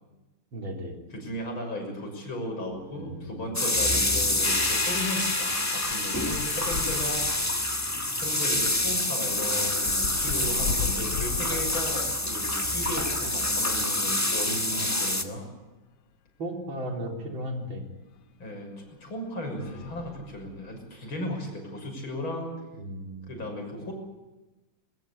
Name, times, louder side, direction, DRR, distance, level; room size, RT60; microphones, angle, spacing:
voice 1, 0.5-1.0 2.9-3.6 3.9-4.2 10.4-11.1 14.7-15.4 16.4-17.9 19.5-20.0 22.8-23.4, equal, 75° right, 2 dB, 4.4 m, -37 dB
voice 2, 1.1-7.3 8.2-15.5 18.4-22.6 23.3-23.9, left 1 dB, 90° left, 3 dB, 7.0 m, -36 dB
sound 1, 2.7-2.9 3.3-3.4 3.7-13.2 13.9-15.3 15.9-16.0 16.3-16.4 18.1-18.2 18.8-19.1 19.5-20.8, left 7 dB, 65° left, 1.5 m, -40 dB
sound 2, 3.5-15.2, left 1 dB, 10° left, 1.2 m, -27 dB
sound 3, 4.4-9.2, left 3 dB, 30° left, 2.7 m, -35 dB
21.5 x 21.5 x 8.4 m, 1.1 s
omnidirectional pair, 2.2 m